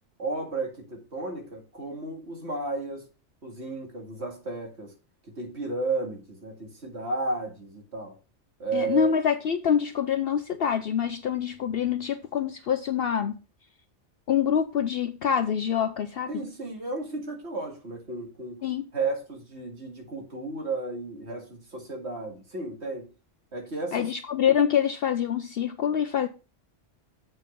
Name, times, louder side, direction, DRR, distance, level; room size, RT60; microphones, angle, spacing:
voice 1, 0.2-3.0 3.4-4.9 5.3-8.2 8.6-9.1 16.3-18.6 18.9-23.1 23.5-24.1, right 3 dB, 65° right, 2.5 m, -33 dB
voice 2, 8.7-13.4 14.3-16.3 18.6-18.8 23.9-26.3, left 8 dB, 60° left, 0.8 m, -25 dB
7.6 x 5.4 x 5.2 m
omnidirectional pair, 1.2 m